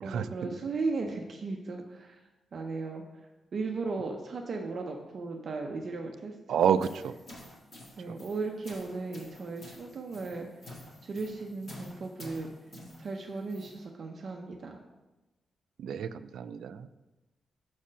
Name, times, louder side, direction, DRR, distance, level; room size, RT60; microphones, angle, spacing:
voice 1, 0.0-2.2 2.5-3.0 3.5-6.7 8.0-10.5 11.0-12.5 13.0-14.8, right 3 dB, 40° right, 2 dB, 0.6 m, -36 dB
voice 2, 6.5-7.1 8.1-8.2 15.8-16.9, right 8 dB, 90° right, 13 dB, 0.3 m, -29 dB
sound 1, 6.6-13.8, left 1 dB, 30° left, 1.7 m, -49 dB
6.3 x 4.2 x 6.3 m, 1.0 s
wide cardioid pair, 180°, 0 cm